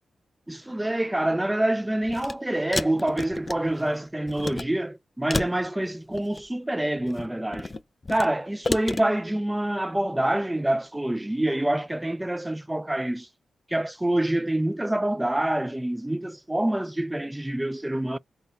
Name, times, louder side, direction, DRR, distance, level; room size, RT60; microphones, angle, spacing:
voice 1, 0.5-7.7 8.1-13.3 13.7-18.2, right 1 dB, 15° right, 0.3 m, -26 dB
sound 1, 2.0-2.3 2.7-3.9 4.3-4.7 5.3-6.5 7.0-8.3 8.6-9.0, left 3 dB, 40° left, 0.5 m, -31 dB
4.0 x 2.2 x 3.9 m
supercardioid pair, 45°, 0 cm